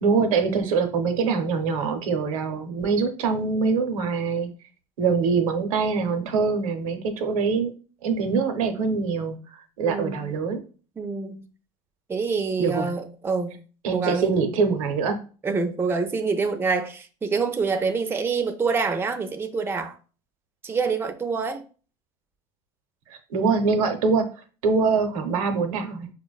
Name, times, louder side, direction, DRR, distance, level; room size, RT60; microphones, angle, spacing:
voice 1, 0.0-4.5 5.0-7.7 8.0-10.6 12.6-12.9 13.8-15.2 23.1-24.3 24.6-26.1, right 5 dB, 85° right, 0.6 m, -24 dB
voice 2, 9.8-10.3 11.0-11.5 12.1-13.6 13.9-14.3 15.4-20.0 20.6-21.6, right 4 dB, 15° right, 0.4 m, -26 dB
4.3 x 2.1 x 2.3 m
hypercardioid pair, 90°, 17 cm